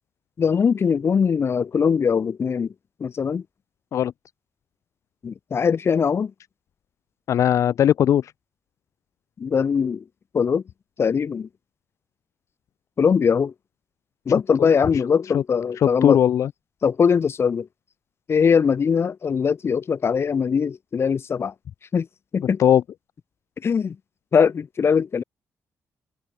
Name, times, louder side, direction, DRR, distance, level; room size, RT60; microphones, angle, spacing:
voice 1, 0.4-2.7 3.0-3.4 5.2-6.3 9.4-10.0 10.3-10.6 11.0-11.5 13.0-13.5 14.3-16.2 16.8-17.7 18.3-21.5 21.9-22.1 22.3-22.6 23.6-24.0 24.3-25.2, left 6 dB, 50° left, 1.3 m, -21 dB
voice 2, 7.3-8.3 15.3-15.4 15.8-16.5 22.6-22.8, left 10 dB, 65° left, 0.3 m, -18 dB
cardioid pair, 85°, 6 cm